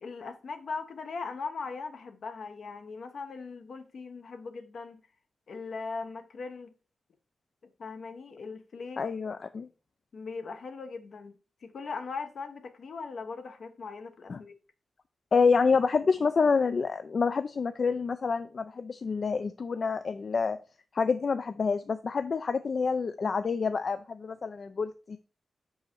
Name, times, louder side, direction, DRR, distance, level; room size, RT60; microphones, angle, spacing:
voice 1, 0.0-5.0 5.5-6.7 7.8-9.0 10.1-11.4 11.6-14.5, left 4 dB, 70° left, 0.8 m, -39 dB
voice 2, 9.0-9.7 14.3-14.4 15.3-20.6 20.9-25.2, left 5 dB, 55° left, 0.3 m, -27 dB
5.1 x 4.7 x 4.3 m
cardioid pair, 85°, 0 cm